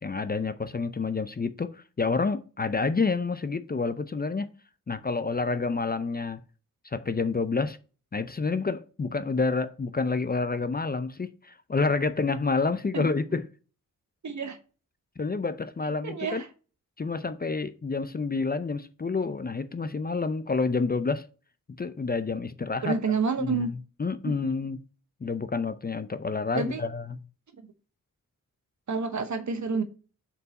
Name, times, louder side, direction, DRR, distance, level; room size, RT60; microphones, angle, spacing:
voice 1, 0.0-4.5 4.9-6.4 6.8-7.8 8.1-13.5 15.2-16.4 17.0-21.3 21.8-23.0 23.4-24.8 25.2-27.2, left 4 dB, 30° left, 0.5 m, -28 dB
voice 2, 14.2-14.6 15.8-16.5 22.8-23.7 26.5-26.8 28.9-29.8, right 5 dB, 55° right, 1.0 m, -29 dB
4.6 x 4.0 x 5.1 m
cardioid pair, 60°, 33 cm